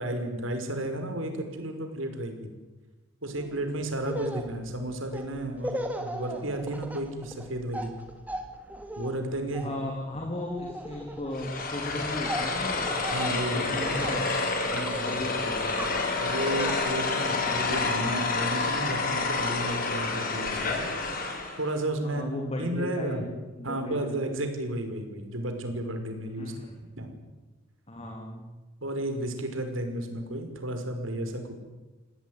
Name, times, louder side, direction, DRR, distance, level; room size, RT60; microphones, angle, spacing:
voice 1, 0.0-2.5 3.2-7.9 9.0-9.7 13.1-14.2 14.7-15.2 16.2-20.9 21.6-23.2 23.6-26.5 27.0-27.1 28.8-31.6, right 1 dB, 85° right, 6 dB, 5.6 m, -33 dB
Laughter, 3.4-3.6 4.0-14.2 14.5-15.2 15.7-16.7, right 1 dB, 10° right, 2.9 m, -37 dB
voice 2, 9.6-12.9 13.5-16.0 22.0-23.2 23.6-24.2 26.4-26.7 27.9-28.5, left 1 dB, 30° left, 1 dB, 3.6 m, -36 dB
sound 1, 11.3-21.7, left 3 dB, 45° left, 5.4 m, -29 dB
28.5 x 19.0 x 9.8 m, 1.2 s
head